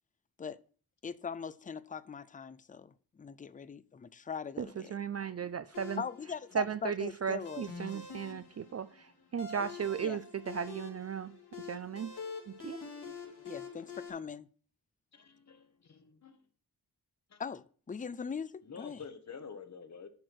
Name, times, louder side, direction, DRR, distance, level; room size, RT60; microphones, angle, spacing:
voice 1, 1.0-5.0 6.0-8.1 10.0-10.2 13.4-14.5 17.4-19.0, left 6 dB, 20° left, 0.4 m, -41 dB
voice 2, 4.6-6.0 6.5-11.3 11.7-12.1 12.5-12.8, right 7 dB, 40° right, 0.4 m, -36 dB
sound 1, 5.7-14.1, left 5 dB, 75° left, 2.6 m, -46 dB
voice 3, 15.1-16.4 17.3-17.4 18.6-20.1, left 6 dB, 45° left, 1.2 m, -49 dB
10.5 x 4.5 x 6.2 m
wide cardioid pair, 135°, 39 cm